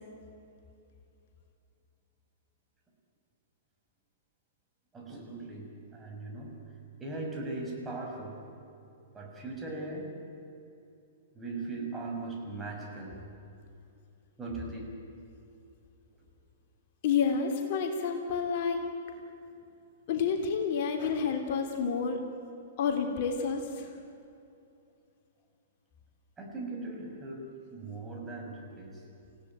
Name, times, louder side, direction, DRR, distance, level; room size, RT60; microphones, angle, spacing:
voice 1, 4.9-6.6 7.0-8.4 9.1-10.1 11.3-13.1 14.4-14.8 26.4-29.0, right 2 dB, 15° right, 0 dB, 6.3 m, -39 dB
voice 2, 17.0-18.8 20.1-22.2 22.8-23.9, left 6 dB, 50° left, 3 dB, 3.1 m, -29 dB
28.0 x 16.5 x 9.4 m, 2.7 s
figure-of-eight pair, 110°, 0 cm